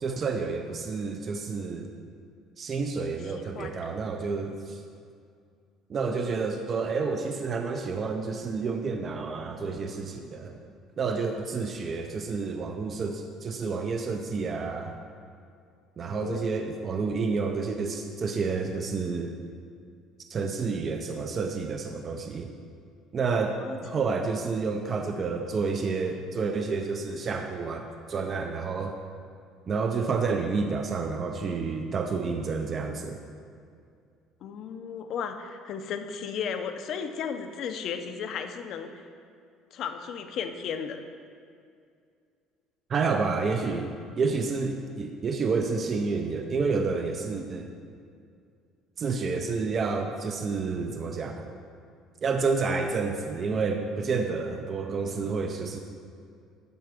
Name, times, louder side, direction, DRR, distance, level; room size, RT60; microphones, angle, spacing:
voice 1, 0.0-1.9 2.6-4.8 5.9-10.6 11.0-15.0 16.0-19.3 20.3-22.5 23.1-28.9 29.7-33.2 42.9-47.7 49.0-51.5 52.2-55.8, right 4 dB, 25° right, 4 dB, 0.4 m, -29 dB
voice 2, 3.3-3.8 16.1-16.4 23.6-23.8 34.4-39.0 39.7-41.0, left 7 dB, 45° left, 7 dB, 0.6 m, -35 dB
12.0 x 4.5 x 6.1 m, 2.3 s
cardioid pair, 180°, 0 cm